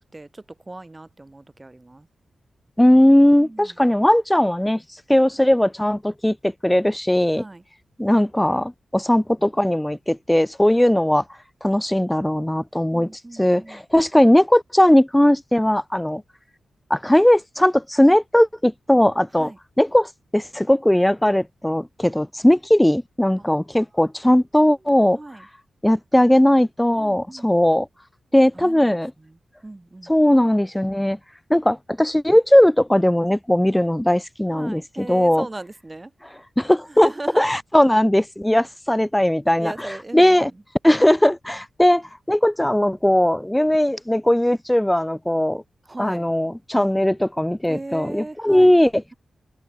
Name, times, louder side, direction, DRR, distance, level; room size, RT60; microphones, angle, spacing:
voice 1, 0.0-2.1 3.4-3.7 7.4-7.6 8.0-8.5 10.7-10.9 12.9-13.8 19.4-19.6 23.4-23.9 25.1-25.5 27.0-27.5 28.6-28.9 29.2-29.3 29.6-30.1 34.6-36.1 36.9-37.5 39.6-40.5 45.8-46.3 47.7-48.8, right 2 dB, 25° right, 4.5 m, -38 dB
voice 2, 2.8-4.8 5.1-7.4 8.0-11.2 11.6-16.2 16.9-19.5 19.8-25.2 25.8-27.9 28.3-29.1 30.0-31.2 31.5-35.5 36.6-37.1 37.4-40.5 40.8-45.6 46.0-48.9, left 1 dB, 10° left, 0.6 m, -18 dB
cardioid pair, 50°, 0 cm